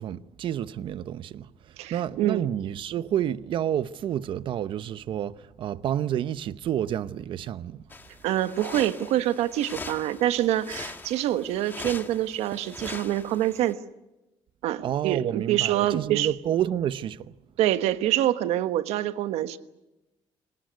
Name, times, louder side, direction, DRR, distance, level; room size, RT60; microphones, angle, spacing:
voice 1, 0.0-7.8 14.8-17.3, right 10 dB, 50° right, 0.8 m, -29 dB
voice 2, 1.8-2.4 8.2-13.8 14.6-16.3 17.6-19.6, right 13 dB, 90° right, 1.3 m, -26 dB
sound 1, 7.9-13.7, left 3 dB, 20° left, 1.6 m, -41 dB
26.5 x 18.0 x 9.6 m
cardioid pair, 155°, 11 cm